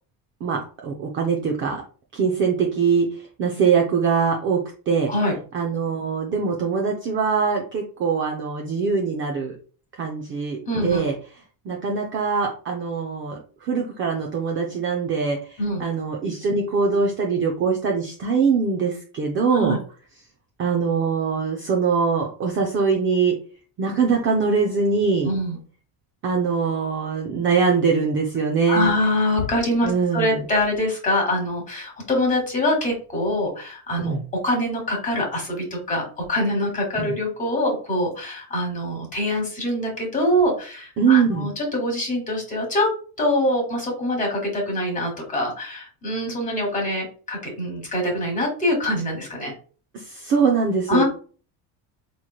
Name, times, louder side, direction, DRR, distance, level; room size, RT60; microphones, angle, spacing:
voice 1, 0.4-1.8 2.1-5.1 5.5-9.6 9.9-11.2 11.6-19.8 20.6-23.4 23.8-25.3 26.2-28.9 29.8-30.4 34.0-34.2 37.0-37.1 41.0-41.5 49.9-51.0, right 5 dB, 30° right, 1 dB, 0.4 m, -22 dB
voice 2, 10.6-11.0 15.6-15.8 19.5-19.8 25.2-25.6 28.7-34.1 34.4-42.9 43.2-49.5 50.9-51.0, left 1 dB, 20° left, 1 dB, 1.2 m, -24 dB
4.3 x 3.0 x 2.3 m, 0.39 s
cardioid pair, 165°, 43 cm